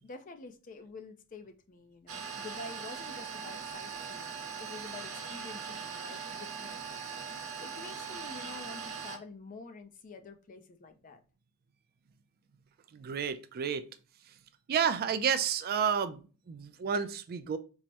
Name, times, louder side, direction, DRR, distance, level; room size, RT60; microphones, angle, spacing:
voice 1, 0.0-7.0 7.6-11.2, left 3 dB, 35° left, 0.4 m, -48 dB
Continuous mechanical whir, 2.1-9.2, right 6 dB, 70° right, 0.9 m, -40 dB
voice 2, 12.9-13.8 14.3-14.4 14.7-17.6, right 7 dB, 45° right, 0.3 m, -31 dB
4.6 x 2.0 x 2.7 m
head